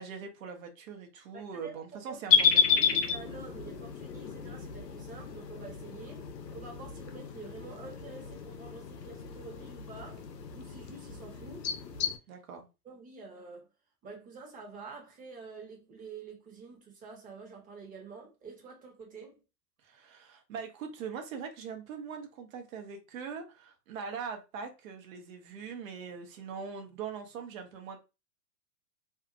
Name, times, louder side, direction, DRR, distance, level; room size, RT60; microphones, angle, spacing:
voice 1, 0.0-2.8 12.3-12.7 19.8-28.0, right 6 dB, 55° right, 0.9 m, -42 dB
voice 2, 1.3-2.2 2.7-10.2 10.5-11.7 12.8-13.7 14.0-19.4, right 4 dB, 15° right, 1.0 m, -48 dB
sound 1, 2.3-12.2, left 6 dB, 80° left, 0.8 m, -31 dB
2.7 x 2.4 x 2.5 m
hypercardioid pair, 115°, 49 cm